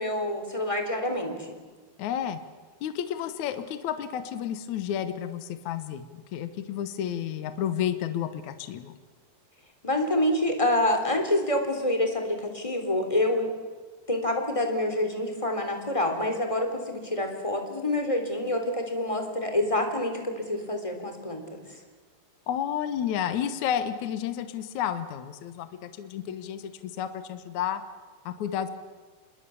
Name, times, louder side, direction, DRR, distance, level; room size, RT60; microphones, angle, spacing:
voice 1, 0.0-1.3 9.8-13.5 14.1-21.6, left 1 dB, 10° left, 4 dB, 2.8 m, -27 dB
voice 2, 2.0-2.4 2.8-8.9 22.5-27.8 28.3-28.7, left 9 dB, 65° left, 10 dB, 2.1 m, -31 dB
27.0 x 22.0 x 7.1 m, 1.4 s
omnidirectional pair, 4.5 m